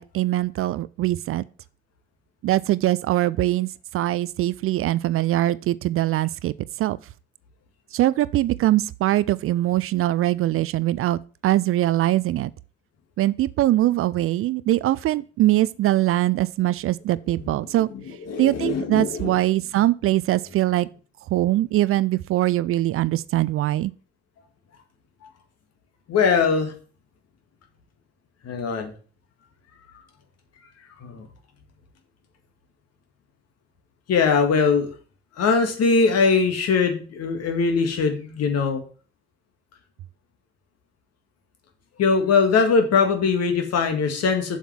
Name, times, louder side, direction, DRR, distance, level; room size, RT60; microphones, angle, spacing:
voice 1, 0.0-1.4 2.4-3.7 3.9-6.5 6.8-7.0 7.9-12.5 13.2-17.9 18.4-20.9 21.3-23.9, right 15 dB, 50° right, 0.4 m, -22 dB
voice 2, 17.3-19.4 26.1-26.7 28.4-28.9 31.0-31.3 34.1-34.9 35.4-38.8 42.0-44.6, left 5 dB, 55° left, 1.9 m, -21 dB
7.2 x 5.7 x 5.9 m
figure-of-eight pair, 40°, 29 cm